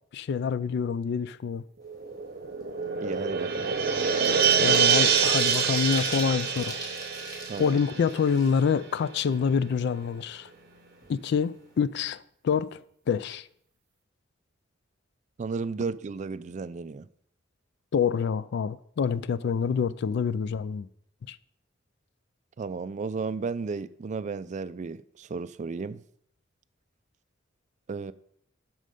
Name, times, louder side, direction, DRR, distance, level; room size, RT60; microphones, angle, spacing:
voice 1, 0.1-1.6 4.6-6.8 7.6-10.5 11.1-13.5 17.9-20.9 21.3-21.4, left 6 dB, 60° left, 0.3 m, -27 dB
sound 1, 1.8-8.8 9.2-9.3, right 6 dB, 55° right, 0.9 m, -26 dB
sound 2, 1.9-2.2 2.5-8.9 9.3-9.4 9.7-10.7 11.0-11.2 11.5-11.8, equal, 20° left, 1.9 m, -41 dB
voice 2, 3.0-3.8 7.5-7.8 15.4-17.1 22.6-26.0 27.9-28.1, right 4 dB, 40° right, 0.3 m, -34 dB
7.6 x 6.3 x 5.2 m
head